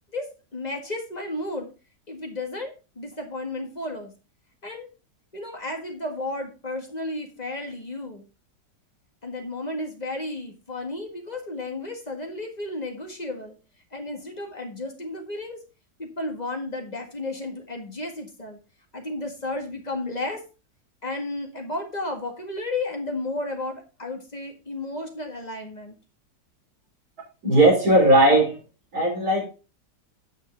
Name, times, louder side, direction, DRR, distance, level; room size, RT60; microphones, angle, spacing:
voice 1, 0.1-1.7 2.1-4.1 4.6-4.9 5.3-8.2 9.2-13.6 13.9-15.6 16.0-18.6 18.9-20.4 21.0-26.0, left 2 dB, 25° left, 3 dB, 1.7 m, -33 dB
voice 2, 27.4-28.6 28.9-29.5, right 1 dB, 55° right, -2 dB, 5.2 m, -17 dB
9.4 x 6.1 x 4.4 m, 0.32 s
omnidirectional pair, 1.9 m